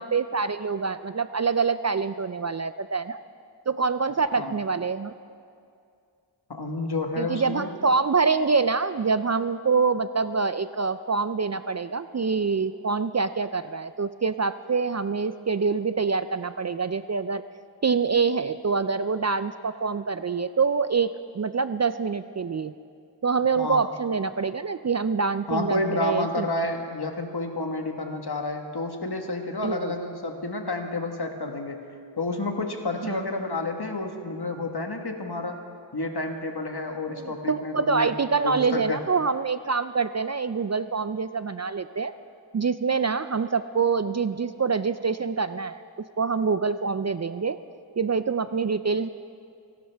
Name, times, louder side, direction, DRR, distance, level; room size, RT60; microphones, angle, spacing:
voice 1, 0.0-3.2 3.7-5.1 7.2-17.4 17.8-22.7 23.2-26.5 29.6-29.9 33.0-33.2 37.1-42.1 42.5-45.8 46.2-47.6 48.0-49.1, right 5 dB, 40° right, 12 dB, 0.4 m, -25 dB
voice 2, 6.5-7.7 23.6-23.8 25.5-31.8 32.2-35.6 35.9-38.1 38.4-39.0, left 2 dB, 55° left, 4 dB, 1.5 m, -30 dB
29.0 x 12.0 x 3.4 m, 2.4 s
wide cardioid pair, 50°, 46 cm